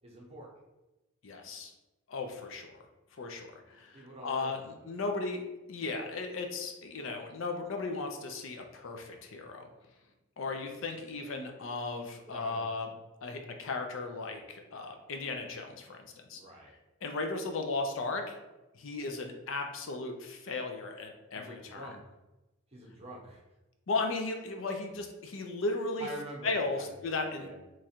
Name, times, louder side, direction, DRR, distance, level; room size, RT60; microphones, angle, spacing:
voice 1, 0.0-0.5 3.9-4.9 12.2-12.7 16.3-16.7 21.3-22.0 22.7-23.4 26.0-27.6, right 1 dB, 30° right, -2 dB, 0.8 m, -46 dB
voice 2, 1.2-1.7 2.1-2.8 3.2-5.4 5.7-9.7 10.4-12.9 13.2-16.4 17.0-18.3 18.7-21.8 23.9-26.1 26.4-27.6, left 3 dB, 65° left, 4 dB, 0.5 m, -36 dB
3.1 x 2.4 x 4.3 m, 1.0 s
head